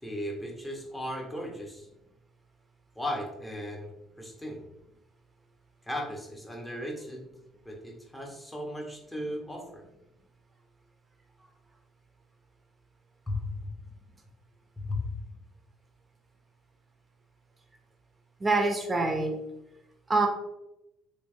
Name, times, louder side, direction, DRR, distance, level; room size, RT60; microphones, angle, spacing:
voice 1, 0.0-1.9 2.9-4.6 5.9-7.2 7.6-9.8 13.3-13.7 14.8-15.0, left 1 dB, 10° left, 0 dB, 1.2 m, -36 dB
voice 2, 18.4-19.4 20.1-20.3, right 3 dB, 25° right, 3 dB, 1.0 m, -25 dB
3.3 x 3.1 x 3.2 m, 0.89 s
hypercardioid pair, 60°, 0 cm